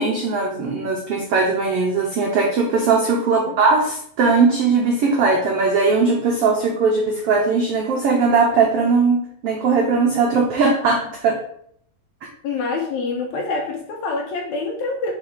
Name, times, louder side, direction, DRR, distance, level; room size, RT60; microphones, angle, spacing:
voice 1, 0.0-11.4, right 4 dB, 90° right, 0 dB, 1.3 m, -19 dB
voice 2, 12.4-15.1, left 3 dB, 70° left, 2 dB, 1.9 m, -26 dB
4.7 x 4.7 x 4.8 m, 0.66 s
omnidirectional pair, 3.8 m